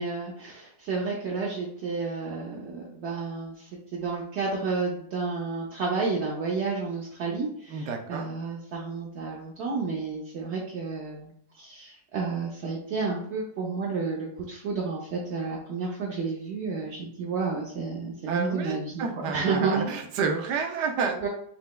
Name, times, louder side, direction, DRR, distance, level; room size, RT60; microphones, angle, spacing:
voice 1, 0.0-20.0 21.2-21.3, right 4 dB, 60° right, -3 dB, 0.8 m, -31 dB
voice 2, 7.7-8.2 18.3-21.3, right 5 dB, 85° right, 3 dB, 1.3 m, -30 dB
5.7 x 3.2 x 2.2 m, 0.66 s
omnidirectional pair, 1.8 m